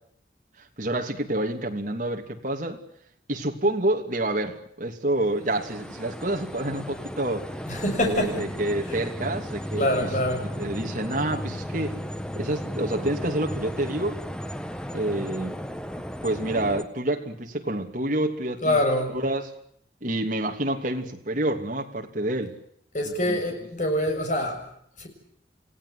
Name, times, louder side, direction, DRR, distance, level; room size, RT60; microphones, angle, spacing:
voice 1, 0.6-2.8 3.3-7.5 8.0-10.1 10.4-12.0 12.3-14.2 14.9-15.6 16.2-18.8 19.1-19.5 20.0-22.6 23.0-23.4, right 1 dB, 45° right, 2 dB, 3.0 m, -28 dB
sound 1, 5.3-16.8, equal, 5° left, 1.3 m, -35 dB
voice 2, 7.7-8.4 9.8-10.5 18.6-19.2 22.9-24.6 25.0-25.1, left 1 dB, 45° left, 3 dB, 7.1 m, -25 dB
29.5 x 17.0 x 9.9 m, 0.70 s
head